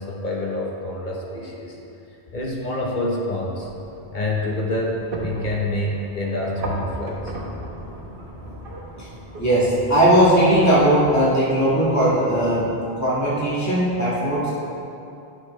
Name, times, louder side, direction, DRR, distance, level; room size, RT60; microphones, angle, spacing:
voice 1, 0.0-1.8 2.3-3.7 4.1-7.3, left 1 dB, 50° left, -2 dB, 1.0 m, -27 dB
sound 1, 3.6-11.0, right 1 dB, 60° right, 1.2 m, -36 dB
voice 2, 9.4-14.5, right 1 dB, 15° left, -9 dB, 1.8 m, -18 dB
9.7 x 6.4 x 3.2 m, 2.7 s
omnidirectional pair, 1.1 m